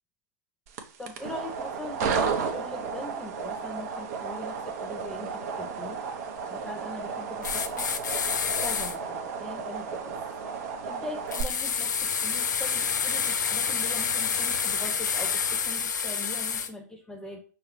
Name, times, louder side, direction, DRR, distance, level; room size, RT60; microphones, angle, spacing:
sound 1, 0.7-11.4, right 5 dB, 50° right, 0.8 m, -33 dB
voice 1, 1.0-6.0 6.5-7.9 8.5-10.2 10.8-17.4, left 1 dB, 5° left, 2 dB, 0.5 m, -41 dB
sound 2, 7.4-9.0 11.3-16.7, left 6 dB, 70° left, 0.6 m, -28 dB
5.5 x 2.8 x 3.2 m, 0.40 s
figure-of-eight pair, 110°, 10 cm